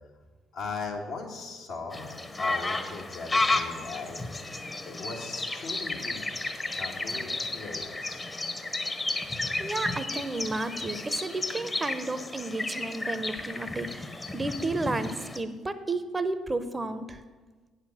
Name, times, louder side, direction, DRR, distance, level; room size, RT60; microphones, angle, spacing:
voice 1, 0.5-4.2 4.8-6.2 6.8-8.2, left 4 dB, 70° left, 0 dB, 1.5 m, -39 dB
sound 1, 1.9-15.4, left 2 dB, 30° left, 1.0 m, -33 dB
voice 2, 9.3-17.2, right 2 dB, 25° right, 12 dB, 0.7 m, -32 dB
8.9 x 6.6 x 6.2 m, 1.4 s
hypercardioid pair, 50°, 0 cm